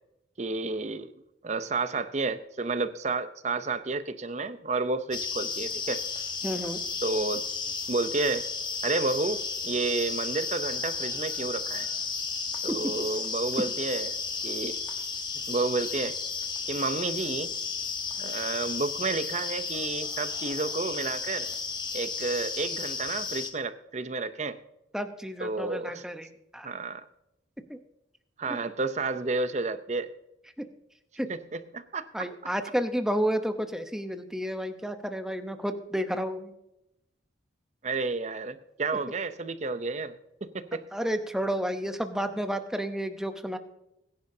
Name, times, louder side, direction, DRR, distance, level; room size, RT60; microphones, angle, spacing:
voice 1, 0.4-1.1 1.4-6.0 7.0-7.4 7.9-8.5 8.8-11.9 12.6-14.8 15.5-16.2 16.7-17.5 18.2-21.5 21.9-24.6 25.4-26.0 26.6-27.0 28.4-30.1 31.3-32.3 37.8-40.1 40.4-40.9, right 3 dB, 35° right, 12 dB, 0.6 m, -31 dB
sound 1, 5.1-23.5, left 5 dB, 25° left, 1.1 m, -33 dB
voice 2, 6.4-6.8 12.7-12.8 24.9-26.7 27.7-27.8 28.5-28.6 30.6-30.7 31.2-31.3 32.1-36.5 40.9-43.6, equal, 5° right, 7 dB, 0.8 m, -31 dB
21.5 x 10.5 x 2.7 m, 0.88 s
head